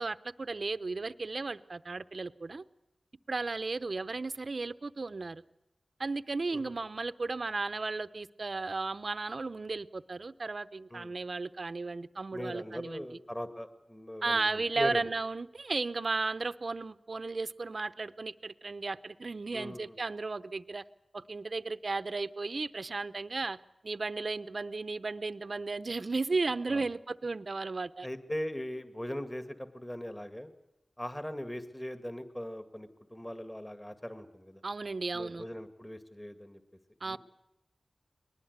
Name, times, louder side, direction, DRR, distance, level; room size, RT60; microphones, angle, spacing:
voice 1, 0.0-2.6 3.3-5.4 6.0-13.0 14.2-20.8 21.1-23.6 23.8-28.1 34.6-35.5 37.0-37.2, right 3 dB, 60° right, 15 dB, 0.7 m, -34 dB
voice 2, 12.3-15.1 19.5-19.9 26.7-26.9 28.0-30.5 31.0-34.6 35.1-36.6 37.1-37.2, equal, 15° left, 9 dB, 2.1 m, -40 dB
21.5 x 19.5 x 8.2 m, 0.92 s
cardioid pair, 40°, 0 cm